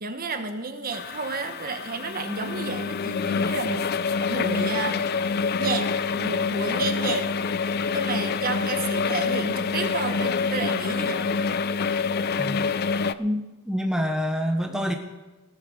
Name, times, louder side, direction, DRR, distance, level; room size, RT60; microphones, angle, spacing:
voice 1, 0.0-3.9 4.3-7.3 7.9-11.4, right 4 dB, 40° right, 8 dB, 1.2 m, -31 dB
sound 1, 0.9-13.1, left 5 dB, 45° left, 0.4 m, -26 dB
voice 2, 13.2-14.9, equal, 5° right, 4 dB, 0.8 m, -27 dB
16.5 x 9.8 x 6.4 m, 1.2 s
head